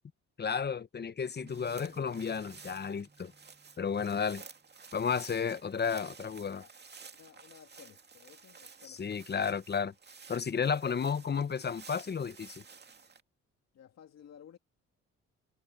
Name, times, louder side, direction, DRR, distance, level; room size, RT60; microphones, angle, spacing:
voice 1, 0.4-3.3 3.8-4.4 4.9-6.6 8.9-9.9 10.3-12.6, left 6 dB, 35° left, 1.1 m, -32 dB
sound 1, 1.3-13.2, right 5 dB, 35° right, 2.3 m, -53 dB
sound 2, 1.4-4.9, right 3 dB, 15° right, 2.6 m, -60 dB
voice 2, 7.1-9.2 13.7-14.6, left 8 dB, 60° left, 2.2 m, -55 dB
cardioid pair, 90°, 30 cm